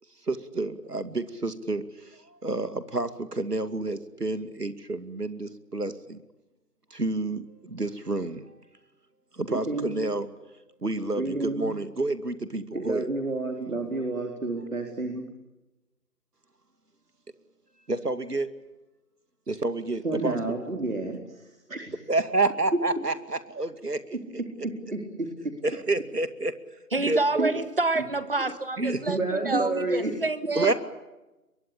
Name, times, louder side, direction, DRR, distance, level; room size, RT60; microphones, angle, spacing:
voice 1, 0.3-1.8 2.4-6.2 6.9-8.4 9.4-10.3 10.8-13.1 17.9-18.5 19.5-20.4 22.1-24.2 25.6-26.5 27.0-27.5 28.4-29.2 30.6-30.7, right 2 dB, 80° right, 2.5 m, -29 dB
voice 2, 9.5-10.2 11.2-11.7 12.7-15.2 20.0-22.0 24.6-25.5 27.4-27.5 29.1-30.1 30.6-30.7, right 2 dB, 60° right, 4.3 m, -30 dB
voice 3, 26.9-30.7, right 3 dB, 35° right, 1.6 m, -28 dB
25.5 x 23.0 x 8.5 m
figure-of-eight pair, 165°, 46 cm